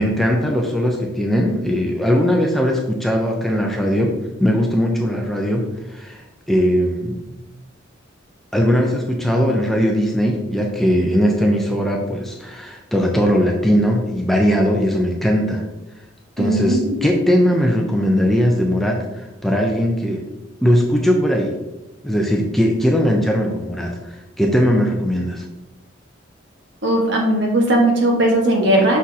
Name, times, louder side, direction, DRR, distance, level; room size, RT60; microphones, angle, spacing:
voice 1, 0.0-4.1 4.4-6.2 6.5-7.2 8.5-15.6 16.4-20.2 20.6-21.5 22.0-25.4, equal, ahead, 0 dB, 0.6 m, -19 dB
voice 2, 16.4-17.1 26.8-29.0, right 1 dB, 55° right, -1 dB, 1.5 m, -17 dB
6.2 x 6.0 x 2.8 m, 0.99 s
head